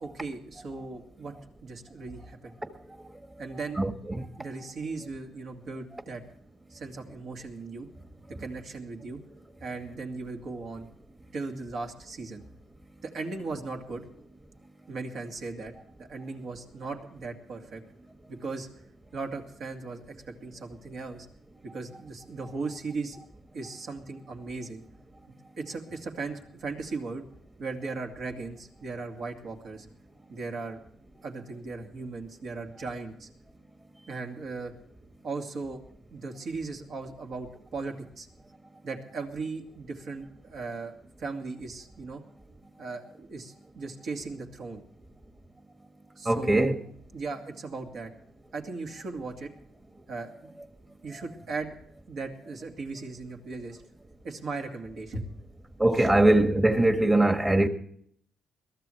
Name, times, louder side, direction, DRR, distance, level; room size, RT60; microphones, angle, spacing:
voice 1, 0.0-1.3 1.6-2.6 3.4-3.8 4.4-6.2 6.7-7.9 8.4-9.2 9.6-10.9 11.3-12.4 13.0-14.1 14.9-15.7 16.0-17.8 18.3-18.7 19.1-20.1 20.4-21.3 21.7-23.2 23.5-24.8 25.3-27.2 27.6-29.9 30.3-30.8 31.2-33.3 34.1-34.7 35.2-35.8 36.1-38.3 38.8-42.2 42.8-44.8 46.2-46.7 47.1-48.1 48.5-49.5 50.1-50.5 51.0-51.7 52.1-53.8 54.2-55.3 56.0-56.1, right 3 dB, 60° right, 2.4 m, -37 dB
voice 2, 3.8-4.3 46.3-46.8 55.8-57.7, right 1 dB, 20° right, 1.6 m, -22 dB
22.0 x 13.5 x 3.3 m
cardioid pair, 90°, 0 cm